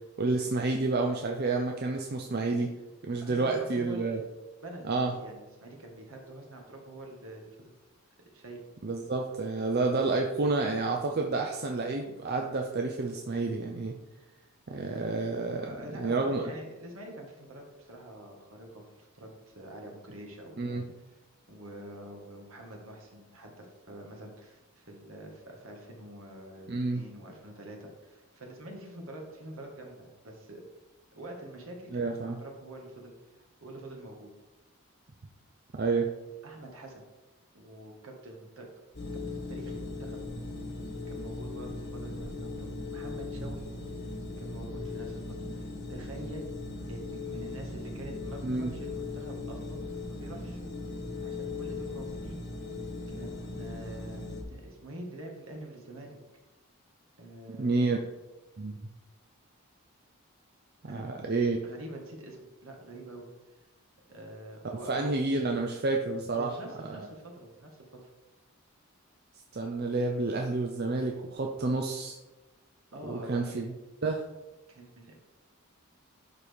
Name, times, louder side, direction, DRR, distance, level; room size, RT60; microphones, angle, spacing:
voice 1, 0.2-2.7 3.0-4.2 4.9-5.1 8.8-13.9 14.7-15.6 16.0-16.4 20.6-20.8 26.7-27.0 31.9-32.4 35.7-36.1 48.4-48.7 57.5-58.0 58.6-58.8 60.8-61.6 64.9-66.5 69.5-72.2 73.0-73.7 74.0-74.2, right 3 dB, 45° right, 2 dB, 0.6 m, -29 dB
voice 2, 3.2-4.2 4.6-7.7 8.3-8.6 15.6-21.2 21.5-30.6 31.1-34.3 36.4-37.0 37.5-38.7 39.3-40.2 41.1-43.7 44.4-45.3 45.5-46.4 46.9-49.8 50.1-50.6 51.2-52.4 53.1-54.2 54.5-56.2 57.2-57.9 60.9-61.1 61.6-63.6 64.1-65.1 66.3-67.7 68.0-68.1 72.9-73.6 74.7-75.1, right 1 dB, 70° right, 1 dB, 1.7 m, -46 dB
sound 1, 38.9-54.4, left 3 dB, 50° left, 1.4 m, -38 dB
11.0 x 4.4 x 3.5 m, 1.1 s
head